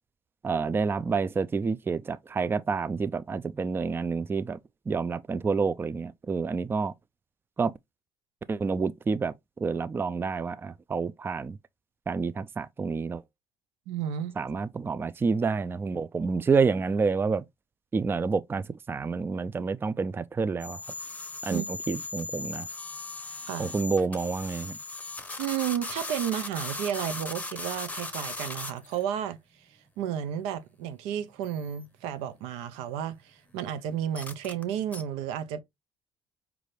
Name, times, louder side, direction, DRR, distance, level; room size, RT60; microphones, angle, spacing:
voice 1, 0.4-4.6 4.9-6.9 7.6-7.7 8.5-9.3 9.6-11.6 12.1-13.2 14.4-17.5 17.9-20.8 21.4-22.7 23.6-24.8, right 4 dB, 20° right, 0.3 m, -28 dB
voice 2, 13.9-14.3 21.5-21.7 23.5-23.7 25.4-29.4 30.0-35.6, right 10 dB, 85° right, 0.5 m, -32 dB
sound 1, 20.6-29.0 31.4-31.8 34.1-34.6 34.9-35.0, left 3 dB, 15° left, 0.7 m, -38 dB
4.6 x 2.5 x 3.2 m
supercardioid pair, 65°, 10 cm